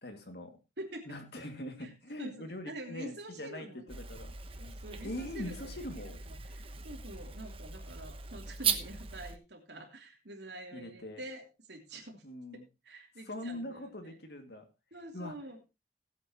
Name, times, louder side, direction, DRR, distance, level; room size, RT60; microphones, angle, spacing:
voice 1, 0.0-0.6 1.1-4.4 5.0-6.2 10.7-11.2 12.2-12.7 13.3-14.7 15.1-15.3, left 1 dB, 65° left, 6 dB, 2.3 m, -42 dB
voice 2, 0.8-1.2 1.8-1.9 2.2-4.0 4.6-12.2 12.5-14.2 14.9-15.6, right 1 dB, 75° right, 3 dB, 3.0 m, -47 dB
sound 1, 3.9-9.4, right 6 dB, 30° right, 1.0 m, -38 dB
19.0 x 8.3 x 3.0 m, 0.26 s
head